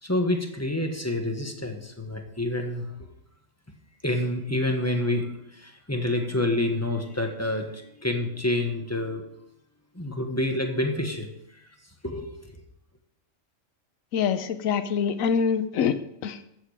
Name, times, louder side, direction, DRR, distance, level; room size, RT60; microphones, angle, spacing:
voice 1, 0.0-2.9 4.0-5.3 5.5-9.2 9.9-11.3 12.0-12.3, left 1 dB, 10° left, 3 dB, 1.5 m, -28 dB
voice 2, 14.1-16.0 16.2-16.4, left 6 dB, 85° left, 11 dB, 1.2 m, -25 dB
14.0 x 8.5 x 5.0 m, 0.78 s
omnidirectional pair, 1.4 m